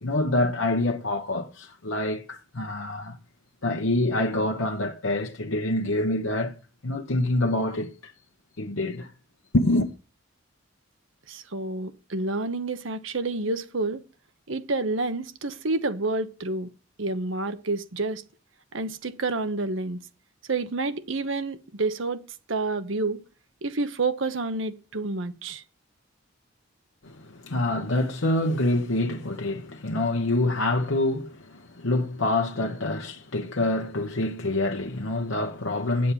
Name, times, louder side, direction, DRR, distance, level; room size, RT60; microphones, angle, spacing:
voice 1, 0.0-3.2 3.6-6.5 6.8-8.1 8.6-9.1 9.5-9.9 27.0-36.1, left 2 dB, 90° left, 1.1 m, -26 dB
voice 2, 11.3-14.0 14.5-16.7 17.0-18.2 18.7-20.0 20.5-22.2 22.5-23.2 23.6-25.6, right 3 dB, 70° right, 1.1 m, -29 dB
8.3 x 7.5 x 7.4 m
head